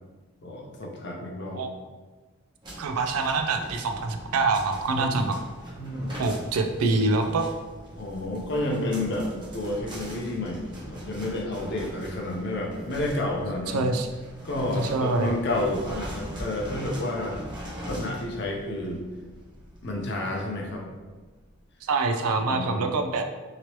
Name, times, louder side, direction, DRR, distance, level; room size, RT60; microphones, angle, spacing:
voice 1, 0.4-1.6 4.9-5.1 5.8-6.2 8.0-9.3 9.5-13.9 14.4-17.4 17.9-19.0 19.8-20.8 22.5-22.8, left 1 dB, 50° left, 0 dB, 0.6 m, -30 dB
voice 2, 1.2-1.7 2.8-5.4 6.2-7.5 13.7-14.1 14.7-15.3 21.8-23.3, right 3 dB, 90° right, 5 dB, 0.4 m, -25 dB
sound 1, 2.6-21.4, equal, 20° right, 0.6 m, -41 dB
2.9 x 2.9 x 2.9 m, 1.3 s
head